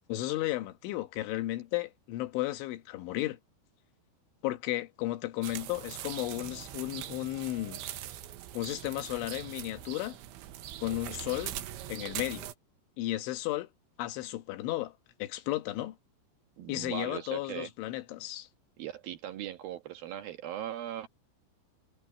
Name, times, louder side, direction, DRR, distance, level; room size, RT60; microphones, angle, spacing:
voice 1, 0.0-3.4 4.4-7.8 8.5-10.2 10.8-11.6 11.9-12.5 13.0-13.7 14.0-14.9 15.2-16.0 16.7-18.5, left 16 dB, 90° left, 3.7 m, -34 dB
sound 1, 5.4-12.5, right 12 dB, 90° right, 3.7 m, -42 dB
voice 2, 16.6-17.7 18.8-21.1, right 11 dB, 65° right, 2.6 m, -39 dB
omnidirectional pair, 5.3 m